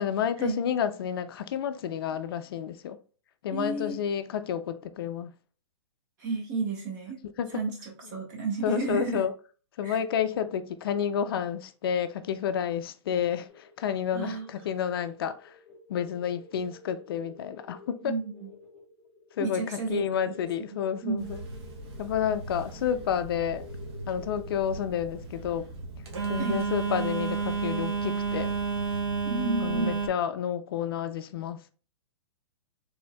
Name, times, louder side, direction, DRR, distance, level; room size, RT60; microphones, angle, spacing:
voice 1, 0.0-3.0 3.4-5.3 7.4-7.6 8.6-9.3 9.8-15.6 15.9-18.1 19.4-19.6 19.9-21.4 22.0-23.6 24.1-25.7 26.3-28.5 29.6-31.6, left 8 dB, 50° left, 0.4 m, -30 dB
voice 2, 3.5-4.0 6.2-7.2 7.5-9.2 9.8-10.0 14.1-14.5 18.0-18.5 19.4-20.0 21.0-21.3 26.3-26.6 29.2-30.0, right 3 dB, 35° right, 1.3 m, -32 dB
sound 1, 13.5-28.9, left 4 dB, ahead, 1.5 m, -52 dB
Telephone, 21.2-30.1, right 5 dB, 55° right, 1.0 m, -32 dB
4.3 x 3.4 x 2.2 m
hypercardioid pair, 160°, 16 cm